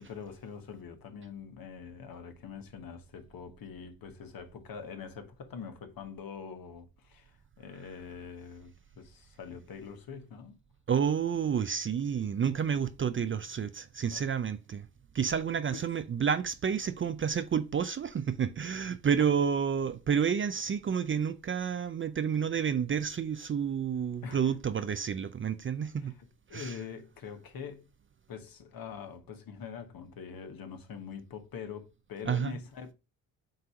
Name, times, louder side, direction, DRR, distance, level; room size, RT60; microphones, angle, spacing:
voice 1, 0.0-10.6 14.0-14.3 15.7-15.9 19.2-19.3 24.2-24.4 26.0-27.9 28.3-32.9, left 6 dB, 55° left, 1.4 m, -44 dB
voice 2, 10.9-14.9 15.1-26.1 26.5-26.7 32.3-32.6, right 7 dB, 30° right, 0.5 m, -30 dB
7.8 x 2.7 x 4.9 m
supercardioid pair, 70°, 43 cm